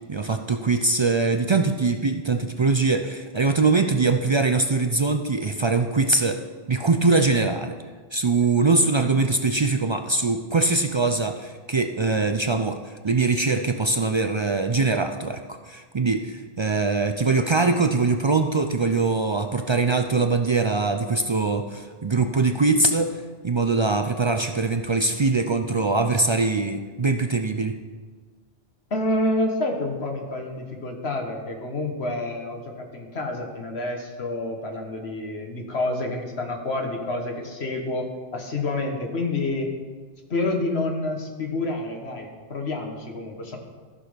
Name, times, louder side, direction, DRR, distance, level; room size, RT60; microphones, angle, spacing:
voice 1, 0.1-6.4 6.7-7.7 8.1-23.2 23.4-27.8, right 3 dB, 45° right, 6 dB, 0.3 m, -22 dB
voice 2, 28.9-39.7 40.3-43.6, left 2 dB, 70° left, 2 dB, 1.6 m, -28 dB
14.0 x 6.2 x 5.1 m, 1.4 s
omnidirectional pair, 1.1 m